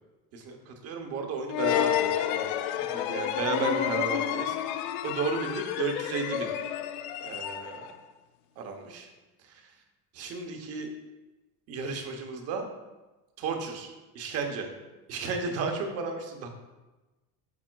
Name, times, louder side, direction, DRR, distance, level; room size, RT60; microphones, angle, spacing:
voice 1, 0.3-2.5 2.7-6.5 7.2-7.9 8.6-9.1 9.4-9.6 10.1-10.9 11.7-12.6 13.4-14.7 15.1-16.5, right 4 dB, 35° right, 4 dB, 0.8 m, -34 dB
sound 1, 1.5-8.0, left 10 dB, 80° left, 0.6 m, -30 dB
11.0 x 4.8 x 2.3 m, 1.1 s
cardioid pair, 175°, 43 cm